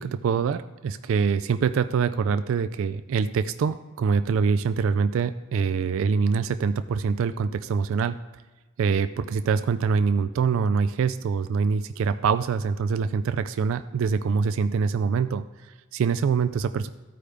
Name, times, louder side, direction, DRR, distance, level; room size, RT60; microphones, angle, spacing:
voice 1, 0.0-8.2 8.8-16.9, right 5 dB, 65° right, 10 dB, 0.3 m, -24 dB
13.5 x 4.9 x 3.3 m, 1.2 s
head